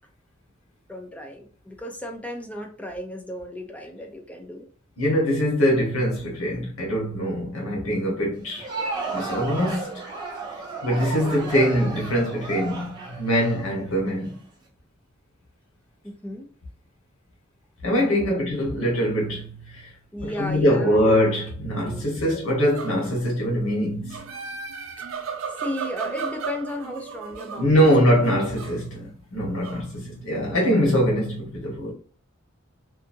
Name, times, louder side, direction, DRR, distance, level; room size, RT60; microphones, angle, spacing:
voice 1, 0.9-4.7 16.0-16.5 18.2-18.4 20.1-21.2 21.8-22.5 25.6-27.9, left 1 dB, 5° left, 0.5 m, -34 dB
voice 2, 5.0-8.7 9.1-10.1 10.8-14.4 17.8-19.9 20.2-24.2 27.6-31.9, equal, 85° left, 1.1 m, -23 dB
Crowd, 8.4-14.3, right 3 dB, 20° right, 0.9 m, -33 dB
sound 1, 22.5-23.2 23.7-28.9 29.5-30.3, right 5 dB, 70° right, 0.4 m, -36 dB
2.8 x 2.4 x 2.6 m
head